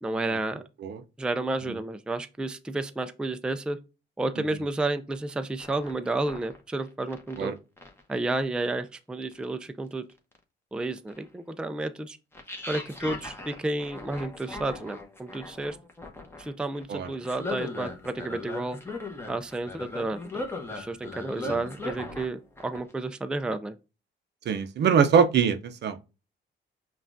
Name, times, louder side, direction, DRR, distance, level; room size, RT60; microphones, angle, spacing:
voice 1, 0.0-0.6 1.2-3.8 4.2-7.5 8.1-10.0 10.7-12.2 12.7-15.8 16.4-18.8 19.3-23.7, right 2 dB, 5° right, 0.3 m, -31 dB
sound 1, 5.1-5.3 5.6-7.4 7.8-8.2 8.6-8.7 9.3-9.4 10.1-10.4 11.1-11.2 12.3-22.3 22.6-22.9, left 2 dB, 10° left, 0.9 m, -39 dB
voice 2, 24.5-26.1, right 7 dB, 60° right, 0.6 m, -23 dB
5.6 x 2.4 x 2.5 m
cardioid pair, 90°, 20 cm